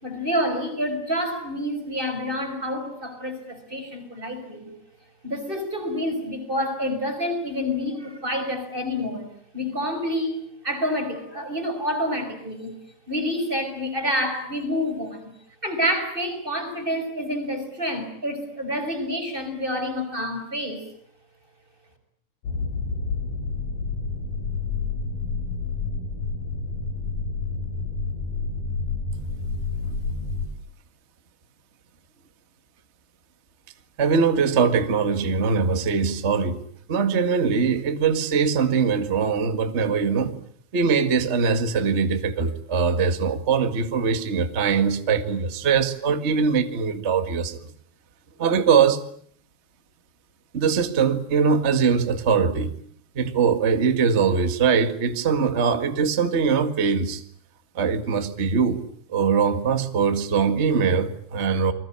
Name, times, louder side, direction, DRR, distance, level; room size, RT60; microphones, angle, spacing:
voice 1, 0.0-4.7 5.2-9.3 9.5-12.7 13.1-15.3 15.6-20.9, equal, 10° right, 5 dB, 5.3 m, -28 dB
sound 1, 22.4-30.5, left 4 dB, 50° left, 5.7 m, -29 dB
voice 2, 34.0-36.6 36.9-40.3 40.7-47.7 48.4-49.0 50.5-52.7 53.1-57.2 57.7-58.8 59.1-61.7, right 5 dB, 75° right, 8 dB, 0.6 m, -22 dB
29.5 x 22.0 x 8.7 m, 0.62 s
omnidirectional pair, 4.8 m